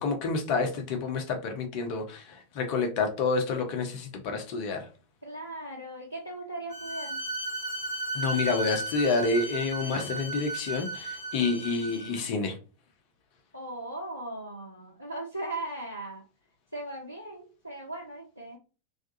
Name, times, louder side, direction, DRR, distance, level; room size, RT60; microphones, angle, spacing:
voice 1, 0.0-4.8 8.1-12.6, left 4 dB, 45° left, 0.6 m, -29 dB
voice 2, 5.2-7.2 11.9-12.3 13.5-16.2 16.7-18.6, right 1 dB, 85° left, 0.5 m, -38 dB
Bowed string instrument, 6.7-12.2, right 2 dB, 50° right, 1.1 m, -35 dB
2.4 x 2.3 x 2.6 m
figure-of-eight pair, 90°, 0 cm